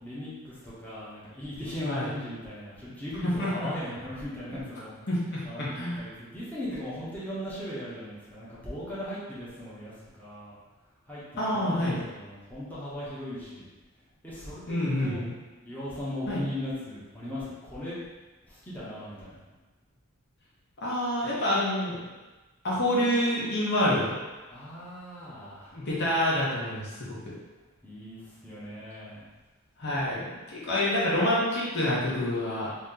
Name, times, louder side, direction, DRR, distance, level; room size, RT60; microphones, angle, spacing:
voice 1, 0.0-5.1 5.4-9.9 10.2-10.6 11.1-13.6 14.2-15.2 15.6-18.0 18.5-19.4 24.5-25.7 27.8-29.2, left 1 dB, 10° left, -10 dB, 0.9 m, -38 dB
voice 2, 5.1-6.0 11.4-12.0 14.7-15.3 16.3-16.4 20.8-22.0 22.6-24.2 25.7-27.2 29.8-32.7, left 1 dB, 55° left, -7 dB, 1.1 m, -27 dB
3.1 x 2.7 x 3.8 m, 1.2 s
head